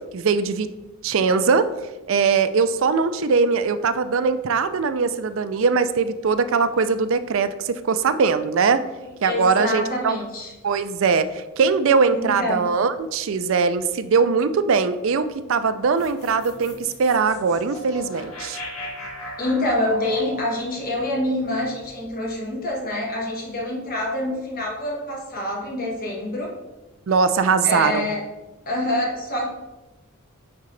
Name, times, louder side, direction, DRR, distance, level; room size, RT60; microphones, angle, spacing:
voice 1, 0.1-0.7 1.0-1.7 2.1-8.8 9.2-10.2 10.6-18.6 27.1-28.1, right 5 dB, 60° right, 11 dB, 0.4 m, -21 dB
voice 2, 9.2-10.5 12.1-12.7 19.4-26.6 27.6-28.2 28.6-29.5, left 1 dB, 40° left, -2 dB, 1.4 m, -26 dB
sound 1, 16.0-22.3, equal, 80° left, 1.4 m, -38 dB
9.3 x 3.8 x 3.2 m, 1.1 s
head